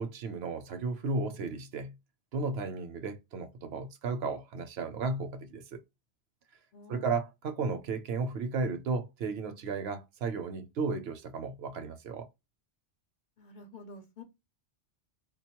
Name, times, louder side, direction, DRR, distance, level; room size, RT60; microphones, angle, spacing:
voice 1, 0.0-1.9 2.3-5.8 6.9-12.3, right 4 dB, 70° right, 0.8 m, -34 dB
voice 2, 6.7-7.1 13.4-14.2, left 3 dB, 50° left, 0.7 m, -49 dB
3.8 x 2.2 x 2.8 m
omnidirectional pair, 1.1 m